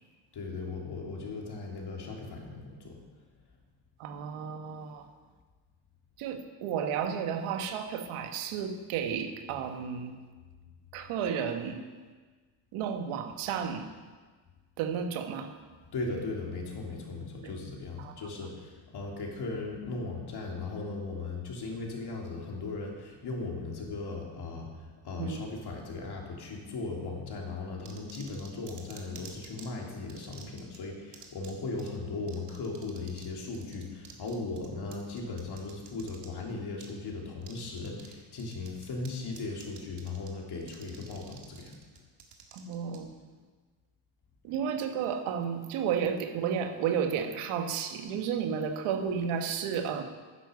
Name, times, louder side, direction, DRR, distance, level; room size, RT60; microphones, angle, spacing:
voice 1, 0.3-3.0 15.7-41.8, left 3 dB, 55° left, -1 dB, 3.1 m, -38 dB
voice 2, 4.0-5.1 6.2-10.2 10.9-11.8 12.7-13.9 14.8-15.5 17.4-17.5 18.0-18.1 25.2-25.4 42.5-43.1 44.4-50.0, right 7 dB, 85° right, 6 dB, 1.4 m, -32 dB
sound 1, 27.9-29.7 30.1-30.8 31.1-31.5 31.8-31.9 32.3-33.3 33.5-36.3 36.8-36.9 37.4-38.1 38.4-39.1 39.4-40.3 40.6-43.0, right 7 dB, 55° right, 2.1 m, -50 dB
10.0 x 9.6 x 6.8 m, 1.4 s
cardioid pair, 100°, 49 cm